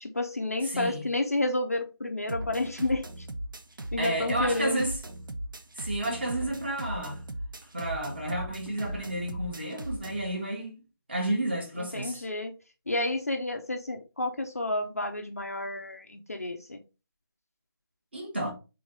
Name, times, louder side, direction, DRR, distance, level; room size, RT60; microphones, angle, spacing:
voice 1, 0.0-3.3 3.9-4.8 11.8-12.5 12.9-16.8, left 2 dB, 40° left, 0.5 m, -30 dB
voice 2, 0.6-1.0 4.0-4.9 5.7-7.2 7.7-10.8 11.1-12.2 18.1-18.5, right 1 dB, 25° right, 1.1 m, -31 dB
sound 1, 2.3-10.3, right 1 dB, 55° right, 0.7 m, -38 dB
3.8 x 3.2 x 4.2 m
figure-of-eight pair, 180°, 13 cm